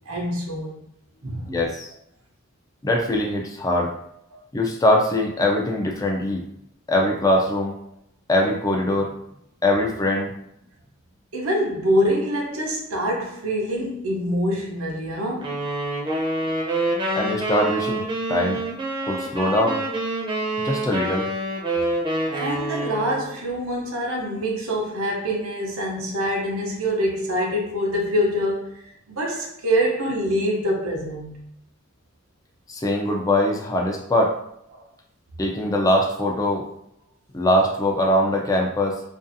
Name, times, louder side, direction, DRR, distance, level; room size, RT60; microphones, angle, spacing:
voice 1, 0.1-0.8 1.2-1.5 4.3-4.4 11.3-15.6 19.0-19.1 22.3-28.8 29.1-31.5 34.7-34.8, equal, 85° right, -2 dB, 0.7 m, -25 dB
voice 2, 1.5-1.9 2.8-3.9 4.5-6.4 6.9-7.8 8.3-9.1 9.6-10.3 17.2-18.6 19.0-19.8 20.6-21.3 32.7-34.4 35.4-36.7 37.3-39.0, left 1 dB, 15° left, 0 dB, 0.3 m, -22 dB
sound 1, 15.4-23.3, right 1 dB, 25° right, 0.6 m, -27 dB
2.5 x 2.4 x 2.6 m, 0.75 s
head